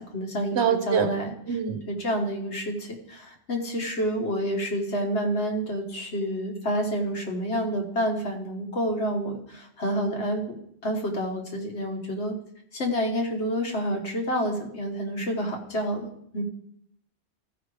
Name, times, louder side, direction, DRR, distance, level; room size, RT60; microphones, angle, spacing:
voice 1, 0.0-1.6 1.9-10.6 10.8-12.4 12.7-16.4, equal, 70° left, 2 dB, 1.7 m, -29 dB
voice 2, 0.5-1.1 1.5-1.8, right 7 dB, 70° right, 8 dB, 1.2 m, -24 dB
14.0 x 4.9 x 4.9 m, 0.73 s
omnidirectional pair, 1.2 m